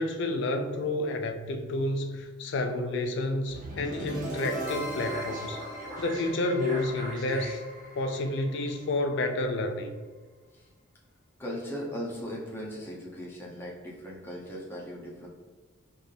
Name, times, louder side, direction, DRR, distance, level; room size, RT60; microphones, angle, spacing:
voice 1, 0.0-5.6 6.0-7.6 7.9-9.9, left 2 dB, 60° left, 6 dB, 0.4 m, -30 dB
sound 1, 3.5-9.5, right 1 dB, 40° right, 0.8 m, -38 dB
voice 2, 11.4-15.3, equal, 10° left, -4 dB, 0.7 m, -38 dB
4.1 x 2.5 x 3.3 m, 1.3 s
head